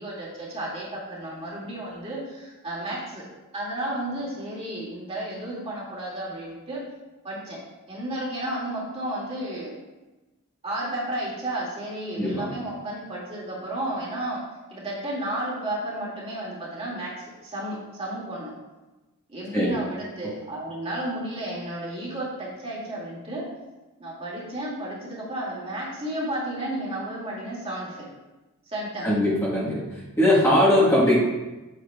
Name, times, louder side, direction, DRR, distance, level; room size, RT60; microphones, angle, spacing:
voice 1, 0.0-3.2 3.5-6.8 7.2-7.6 7.9-9.7 10.6-14.4 14.7-18.5 19.3-23.4 24.0-28.0 28.7-29.1, right 1 dB, 25° right, -6 dB, 2.3 m, -32 dB
voice 2, 12.2-12.5 19.5-19.7 29.0-29.8 30.2-31.1, left 1 dB, 10° left, -8 dB, 1.4 m, -20 dB
8.2 x 7.4 x 2.4 m, 1.1 s
head